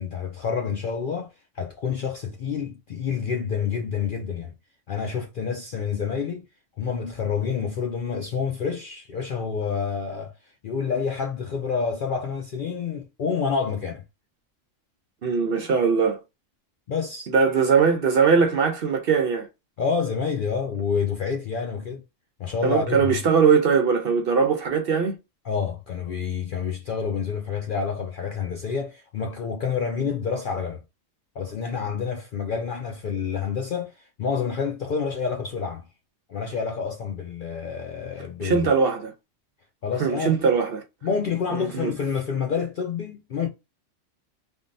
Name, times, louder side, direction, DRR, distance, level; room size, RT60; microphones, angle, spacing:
voice 1, 0.0-4.5 4.9-6.5 6.8-14.0 16.9-17.3 19.8-22.0 22.4-23.2 25.4-30.8 31.4-35.9 36.3-38.7 39.8-40.4 41.0-43.5, left 6 dB, 60° left, 0.5 m, -28 dB
voice 2, 15.2-16.2 17.3-19.5 22.6-25.2 38.4-39.1 40.0-40.8 41.5-41.9, right 5 dB, 60° right, 0.7 m, -21 dB
3.5 x 2.2 x 2.5 m
omnidirectional pair, 1.4 m